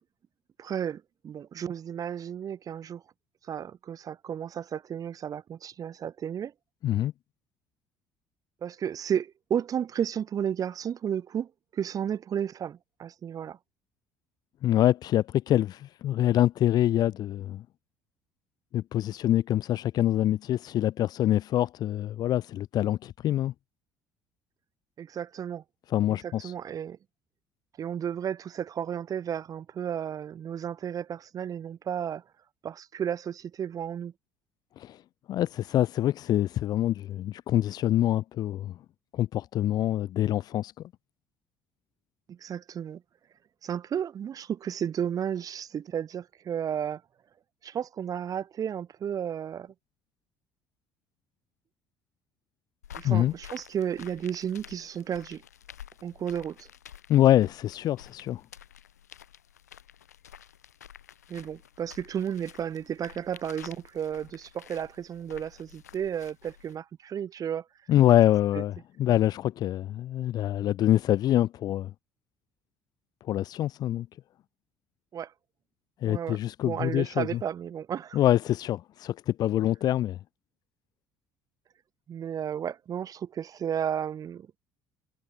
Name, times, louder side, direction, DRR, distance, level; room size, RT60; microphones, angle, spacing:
voice 1, 0.6-3.0 3.5-6.5 8.6-13.6 25.0-25.6 26.2-27.0 27.8-32.2 32.6-34.1 42.3-43.0 43.6-47.0 47.6-49.7 52.9-55.4 56.0-56.7 61.3-67.6 68.5-68.6 75.1-75.3 76.0-76.4 76.6-78.2 82.1-84.5, right 8 dB, 45° right, 1.0 m, -33 dB
voice 2, 14.6-17.6 18.7-23.5 25.9-26.5 34.8-35.0 35.3-38.8 39.1-40.7 53.0-53.3 57.1-58.4 67.9-71.9 73.3-74.1 76.0-77.4 78.1-80.2, left 12 dB, 50° left, 0.4 m, -25 dB
sound 1, 52.8-66.8, left 10 dB, 90° left, 4.4 m, -50 dB
hypercardioid pair, 60°, 9 cm